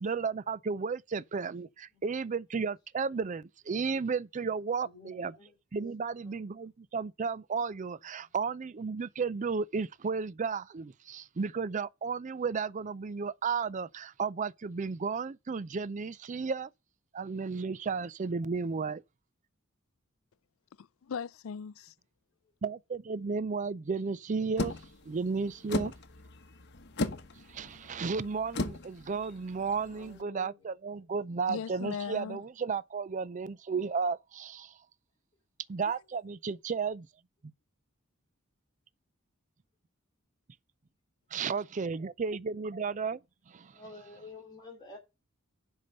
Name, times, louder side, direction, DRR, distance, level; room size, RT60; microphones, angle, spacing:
voice 1, 0.0-5.3 5.7-16.7 17.1-19.0 22.6-24.7 25.1-25.9 27.5-34.7 35.7-37.1 37.4-37.5 41.3-43.2 43.5-43.7, right 5 dB, 35° right, 0.4 m, -33 dB
voice 2, 1.9-2.2 4.8-5.6 6.0-6.3 8.3-8.4 29.8-30.7 43.7-45.0, left 3 dB, 20° left, 5.1 m, -51 dB
voice 3, 20.8-21.9 31.5-32.4, left 6 dB, 75° left, 0.4 m, -38 dB
sound 1, 24.6-30.2, left 2 dB, 55° left, 1.1 m, -37 dB
8.4 x 5.6 x 6.6 m
head